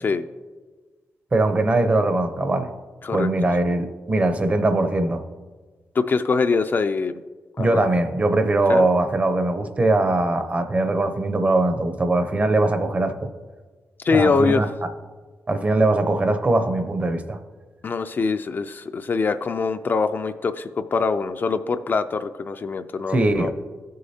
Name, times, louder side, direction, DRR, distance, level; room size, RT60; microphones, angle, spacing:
voice 1, 1.3-2.7 3.1-5.2 7.6-13.3 14.1-14.7 15.5-17.4 23.1-23.5, right 2 dB, 25° right, 9 dB, 0.6 m, -21 dB
voice 2, 6.0-7.1 7.6-7.9 8.7-8.9 14.0-14.6 17.8-23.5, left 4 dB, 40° left, 9 dB, 0.3 m, -23 dB
14.5 x 6.5 x 2.8 m, 1.4 s
wide cardioid pair, 150°, 5 cm